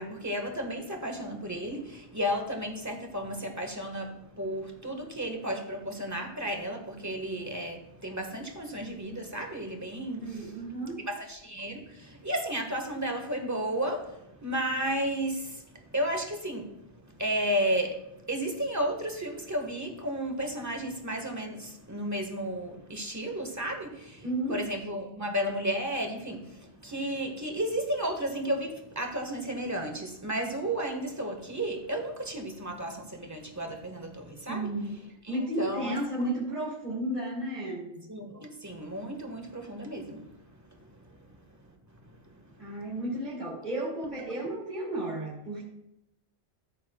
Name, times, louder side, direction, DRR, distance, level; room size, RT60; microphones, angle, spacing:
voice 1, 0.0-10.6 11.0-34.7 35.2-36.0 38.1-42.9, right 1 dB, 15° right, 3 dB, 1.4 m, -33 dB
voice 2, 10.2-11.0 24.2-24.5 34.5-35.0 35.3-38.0 42.6-45.7, right 1 dB, 40° right, -8 dB, 3.0 m, -33 dB
14.5 x 7.2 x 2.3 m, 0.85 s
omnidirectional pair, 1.1 m